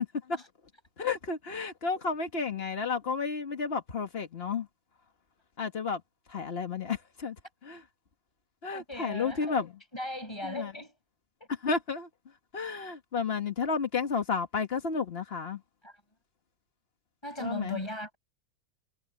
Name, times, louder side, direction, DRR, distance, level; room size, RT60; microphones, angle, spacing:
voice 1, 1.0-4.7 5.6-6.0 6.3-7.3 7.6-7.8 8.6-9.7 10.4-10.7 11.6-12.1 12.5-15.6 17.4-17.8, left 5 dB, 70° left, 0.5 m, -32 dB
voice 2, 8.7-9.6 9.9-10.9 11.4-11.5 15.8-15.9 17.2-18.2, left 1 dB, 10° left, 7.5 m, -38 dB
omnidirectional pair, 3.5 m